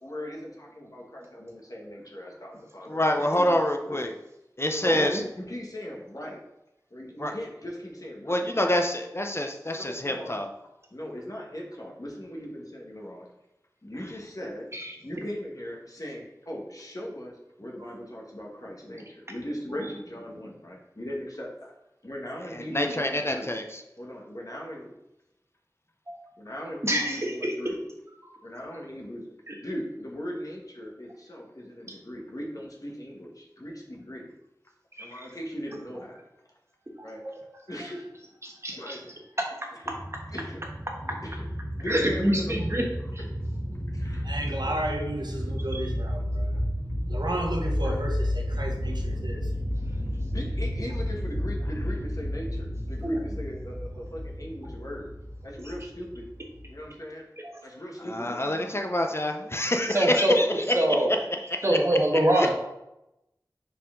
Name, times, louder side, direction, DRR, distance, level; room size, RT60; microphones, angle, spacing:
voice 1, 0.0-4.0 4.8-6.4 6.9-8.7 9.6-10.4 10.9-13.3 13.8-14.6 15.0-21.7 22.0-23.5 24.0-24.9 26.4-27.8 28.4-29.3 29.6-34.3 35.0-36.2 37.0-37.2 37.7-38.1 38.7-39.0 40.3-40.6 41.0-41.4 41.7-42.6 43.9-44.3 44.6-44.7 45.4-45.5 47.8-47.9 50.3-55.1 55.4-56.3 56.7-57.3 57.6-58.7 60.4-60.6, equal, 50° left, -2 dB, 1.4 m, -38 dB
voice 2, 2.9-4.1 4.6-5.1 7.2-7.3 8.2-10.5 22.5-23.6 58.1-60.5, left 1 dB, 35° left, 4 dB, 0.5 m, -26 dB
voice 3, 26.8-27.7 29.5-29.6 35.0-35.3 37.0-37.4 37.7-37.8 38.4-39.0 39.4-39.5 41.9-42.8 43.1-43.2 45.7-45.8 53.0-53.2 57.4-57.5 59.7-60.4 60.7-61.2 61.6-62.5, right 1 dB, 35° right, 0 dB, 1.3 m, -26 dB
sound 1, 39.8-56.9, equal, 15° right, 1.4 m, -32 dB
voice 4, 44.2-46.6 47.1-49.5, right 1 dB, 70° right, 1 dB, 1.0 m, -33 dB
5.5 x 4.6 x 3.7 m, 0.90 s
wide cardioid pair, 40°, 7 cm